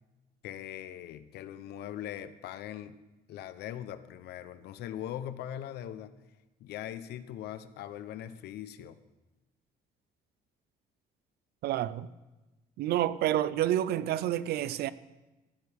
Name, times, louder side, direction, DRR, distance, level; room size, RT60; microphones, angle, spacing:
voice 1, 0.4-3.0 3.3-6.1 6.6-9.0, left 11 dB, 75° left, 0.8 m, -41 dB
voice 2, 11.6-12.1 12.8-14.9, right 12 dB, 70° right, 0.6 m, -29 dB
15.5 x 13.5 x 3.6 m
cardioid pair, 110°, 17 cm